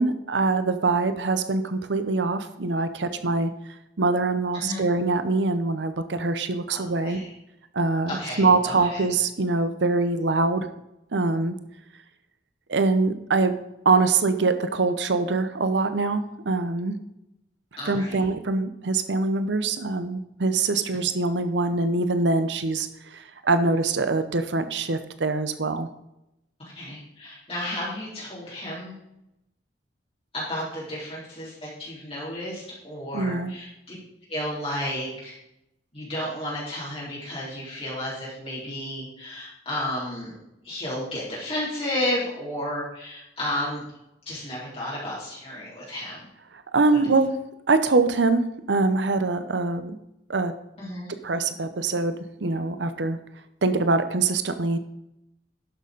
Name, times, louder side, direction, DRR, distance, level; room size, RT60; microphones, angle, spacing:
voice 1, 0.0-3.5 4.0-7.2 7.7-10.7 11.1-11.6 12.7-13.6 13.8-17.0 17.9-25.9 33.1-33.5 46.7-47.4 47.7-48.4 48.7-50.0 50.3-50.5 51.2-52.1 52.4-53.2 53.6-54.8, right 3 dB, 75° right, 11 dB, 0.8 m, -23 dB
voice 2, 4.5-4.9 6.7-7.3 8.1-9.0 17.8-18.3 26.7-29.0 30.3-33.9 34.3-35.3 35.9-40.3 40.6-43.8 44.3-46.3 46.9-47.0 50.8-51.1, left 1 dB, 35° left, -7 dB, 3.8 m, -32 dB
11.5 x 6.7 x 5.3 m, 0.86 s
head